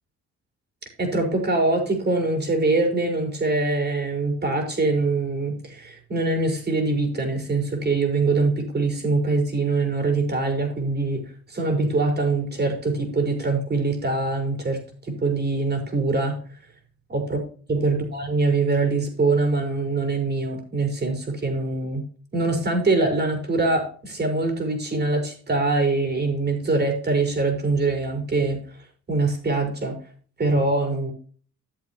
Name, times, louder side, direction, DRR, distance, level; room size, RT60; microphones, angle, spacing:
voice 1, 1.0-16.4 17.1-17.4 17.7-22.0 22.3-28.6 29.1-30.0 30.4-31.1, right 3 dB, 35° right, 3 dB, 5.0 m, -23 dB
13.5 x 8.0 x 3.0 m, 0.43 s
cardioid pair, 90°, 30 cm